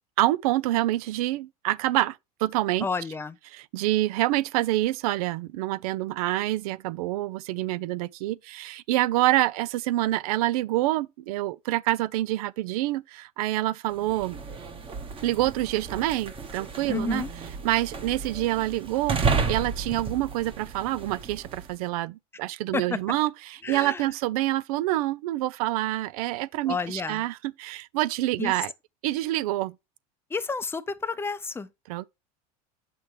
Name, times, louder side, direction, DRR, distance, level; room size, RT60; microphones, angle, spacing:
voice 1, 0.2-2.9 3.5-14.4 15.2-17.2 17.6-28.7 29.0-29.7 31.9-32.0, right 16 dB, 80° right, 0.5 m, -27 dB
voice 2, 2.8-3.4 16.9-17.3 22.7-23.0 23.6-24.1 26.7-27.2 28.4-28.7 30.3-31.7, left 4 dB, 10° left, 0.5 m, -30 dB
sound 1, 13.9-21.8, right 5 dB, 30° right, 1.2 m, -32 dB
7.5 x 6.1 x 3.2 m
supercardioid pair, 120°, 19 cm